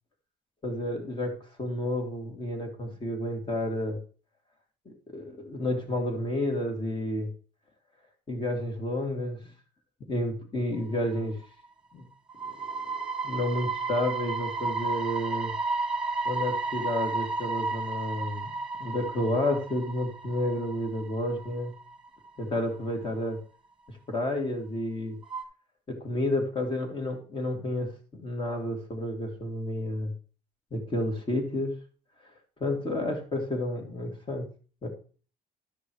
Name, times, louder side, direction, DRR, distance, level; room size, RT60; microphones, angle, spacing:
voice 1, 0.6-4.0 4.9-7.3 8.3-9.5 10.1-11.4 11.9-12.0 12.4-13.0 13.2-15.5 16.2-18.5 18.8-21.7 22.4-23.4 24.1-25.2 25.9-30.1 30.7-31.7 32.6-34.5 34.8-34.9, left 1 dB, 30° left, 3 dB, 2.8 m, -31 dB
sound 1, 10.9-11.2 11.6-11.7 12.3-22.4 22.8-22.9 25.2-25.4, right 3 dB, 5° right, 2.3 m, -33 dB
12.5 x 5.3 x 4.9 m, 0.40 s
cardioid pair, 110°, 17 cm